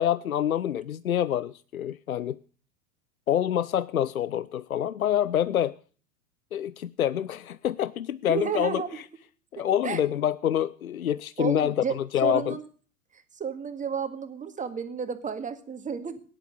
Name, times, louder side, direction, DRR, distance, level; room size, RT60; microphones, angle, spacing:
voice 1, 0.0-2.4 3.3-5.8 6.5-8.8 9.5-12.6, left 10 dB, 80° left, 0.7 m, -26 dB
voice 2, 8.3-9.0 9.8-10.0 11.4-12.7 13.1-16.2, right 6 dB, 20° right, 2.0 m, -32 dB
17.0 x 11.0 x 6.7 m
figure-of-eight pair, 90°, 42 cm